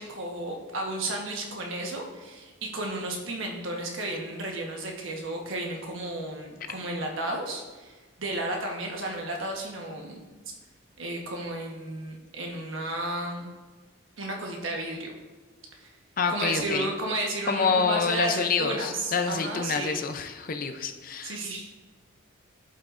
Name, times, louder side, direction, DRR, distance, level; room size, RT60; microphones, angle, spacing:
voice 1, 0.0-10.2 11.0-13.5 14.2-15.1 15.8-15.9 16.3-20.0 21.2-21.7, right 1 dB, 70° right, 1 dB, 1.2 m, -33 dB
voice 2, 16.2-16.9 17.5-21.4, left 5 dB, 40° left, 7 dB, 0.5 m, -27 dB
11.5 x 5.7 x 2.5 m, 1.3 s
head